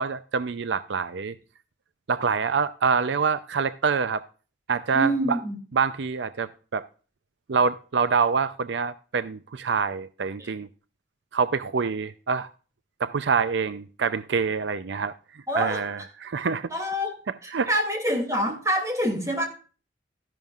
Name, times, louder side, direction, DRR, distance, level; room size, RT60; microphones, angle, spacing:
voice 1, 0.0-1.3 2.1-4.2 4.7-5.4 5.7-6.8 7.5-10.7 11.3-12.5 13.0-15.1 15.6-16.7 17.5-17.7, right 5 dB, 75° right, 14 dB, 0.5 m, -26 dB
voice 2, 4.9-5.6 10.4-10.5 15.5-15.8 16.7-17.1 17.4-19.5, equal, 15° right, 3 dB, 2.5 m, -26 dB
13.5 x 10.5 x 2.4 m, 0.37 s
head